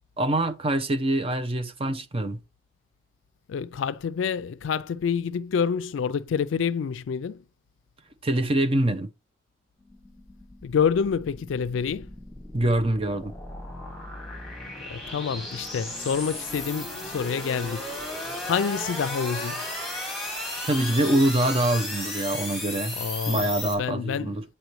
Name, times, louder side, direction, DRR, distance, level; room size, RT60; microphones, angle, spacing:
voice 1, 0.2-2.4 8.2-9.1 12.5-13.3 20.6-23.0 23.3-24.4, right 1 dB, 30° right, 0.6 m, -24 dB
voice 2, 3.5-7.4 10.6-12.1 14.9-17.9 18.5-19.6 23.0-23.5 23.8-24.3, left 6 dB, 85° left, 0.4 m, -27 dB
sound 1, 9.8-23.7, left 1 dB, ahead, 1.9 m, -35 dB
8.0 x 4.3 x 3.1 m
head